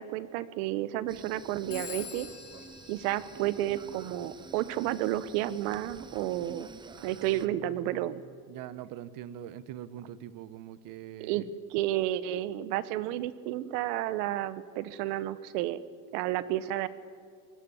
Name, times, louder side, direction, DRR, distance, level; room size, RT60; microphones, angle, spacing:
voice 1, 0.0-2.3 2.9-6.7 7.0-8.2 11.2-11.4 11.7-15.8 16.1-16.9, right 14 dB, 65° right, 16 dB, 1.3 m, -31 dB
sound 1, 1.1-7.5, right 5 dB, 10° right, 0.5 m, -48 dB
Telephone, 1.7-4.2, left 8 dB, 30° left, 2.7 m, -45 dB
voice 2, 7.0-11.5, right 11 dB, 40° right, 16 dB, 1.1 m, -44 dB
24.0 x 20.5 x 7.2 m, 2.1 s
supercardioid pair, 135°, 49 cm